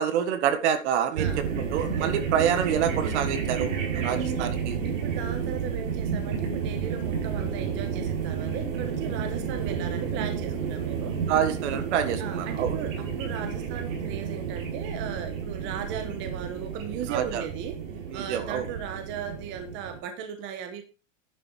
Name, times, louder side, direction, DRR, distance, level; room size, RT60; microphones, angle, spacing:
voice 1, 0.0-1.3 1.5-4.8 11.3-12.8 17.1-17.4 18.1-18.7, right 8 dB, 60° right, 10 dB, 1.8 m, -27 dB
sound 1, 1.1-20.0, right 6 dB, 80° right, 4.9 m, -31 dB
voice 2, 4.8-11.2 12.2-17.8 18.1-20.8, right 8 dB, 30° right, 7 dB, 1.3 m, -37 dB
11.0 x 7.3 x 4.6 m, 0.30 s
supercardioid pair, 165°, 39 cm